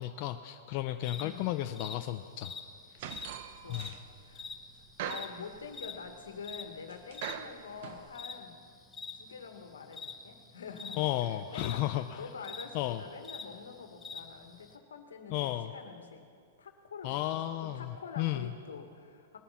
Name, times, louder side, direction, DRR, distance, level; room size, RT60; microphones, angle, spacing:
voice 1, 0.0-2.5 2.9-3.0 3.7-3.9 11.0-12.2 12.7-13.0 15.3-15.7 17.0-18.5, left 14 dB, 45° left, 7 dB, 0.5 m, -33 dB
sound 1, 1.0-14.7, left 4 dB, 15° left, 1.0 m, -45 dB
sound 2, 3.0-4.2 4.5-6.1 6.4-6.5 6.9-8.1, right 9 dB, 55° right, 0.8 m, -41 dB
voice 2, 3.6-4.0 4.2-4.5 4.8-8.6 9.2-16.2 16.6-17.4 17.7-19.4, left 5 dB, 85° left, 5 dB, 1.7 m, -46 dB
21.0 x 7.1 x 5.7 m, 2.3 s
hypercardioid pair, 120°, 0 cm